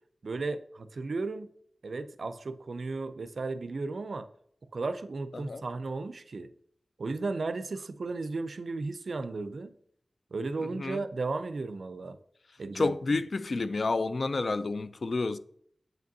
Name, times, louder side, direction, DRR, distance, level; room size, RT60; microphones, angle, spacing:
voice 1, 0.2-1.5 1.8-4.3 4.7-6.5 7.0-9.7 10.3-12.2 12.6-13.2, right 3 dB, 70° right, 0.4 m, -35 dB
voice 2, 12.7-15.4, left 3 dB, 60° left, 0.3 m, -29 dB
7.6 x 5.1 x 2.7 m
wide cardioid pair, 85°, 0 cm